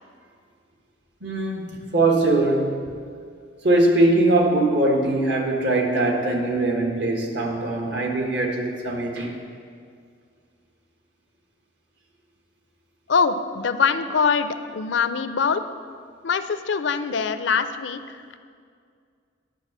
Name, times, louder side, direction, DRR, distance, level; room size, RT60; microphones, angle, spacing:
voice 1, 1.2-2.7 3.6-9.4, right 2 dB, 70° right, 1 dB, 1.5 m, -21 dB
voice 2, 13.1-15.6 16.2-18.4, left 5 dB, 75° left, 11 dB, 0.5 m, -23 dB
10.0 x 6.0 x 7.2 m, 2.2 s
head